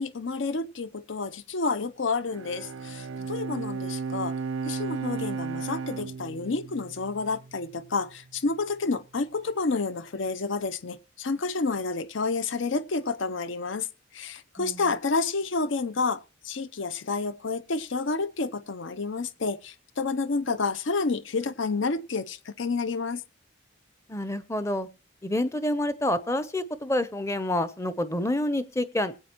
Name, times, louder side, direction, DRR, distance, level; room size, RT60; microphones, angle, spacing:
voice 1, 0.0-4.3 4.6-13.9 14.1-23.2, left 4 dB, 65° left, 0.7 m, -29 dB
Bowed string instrument, 2.2-7.7, right 5 dB, 80° right, 0.5 m, -34 dB
voice 2, 24.1-24.9 25.2-29.2, left 1 dB, 15° left, 0.8 m, -28 dB
20.5 x 8.6 x 3.0 m
head